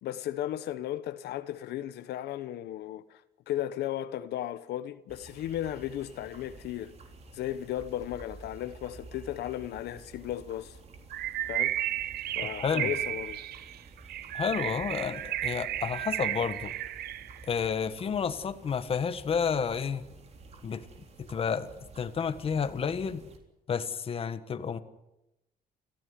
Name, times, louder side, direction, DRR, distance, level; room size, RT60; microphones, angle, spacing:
voice 1, 0.0-6.9 7.3-10.8 11.5-11.7 12.3-13.4, left 12 dB, 80° left, 1.1 m, -35 dB
sound 1, 5.1-23.4, right 3 dB, 40° right, 3.7 m, -51 dB
Bird, 11.1-17.4, right 13 dB, 70° right, 0.9 m, -33 dB
voice 2, 12.5-12.9 14.3-16.7 17.4-20.0 20.6-20.8 21.3-21.7 22.0-23.2 23.7-24.8, left 6 dB, 35° left, 1.5 m, -30 dB
29.5 x 15.0 x 9.5 m
cardioid pair, 150°, 17 cm